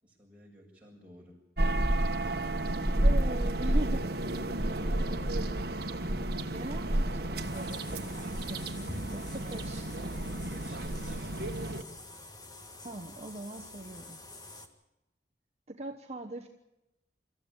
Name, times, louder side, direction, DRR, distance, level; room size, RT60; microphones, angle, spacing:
voice 1, 0.0-1.9 10.5-11.4, equal, 5° right, -3 dB, 7.4 m, -55 dB
sound 1, 1.6-11.8, right 1 dB, 55° right, 1.5 m, -31 dB
voice 2, 3.0-4.1 4.6-5.1 6.5-10.1 12.8-14.2 15.7-16.5, right 1 dB, 35° right, 4 dB, 1.2 m, -41 dB
sound 2, 3.8-9.2, left 1 dB, 65° left, 4.4 m, -57 dB
sound 3, 7.4-14.7, left 2 dB, 20° left, 1.9 m, -47 dB
26.0 x 14.0 x 8.9 m, 0.94 s
head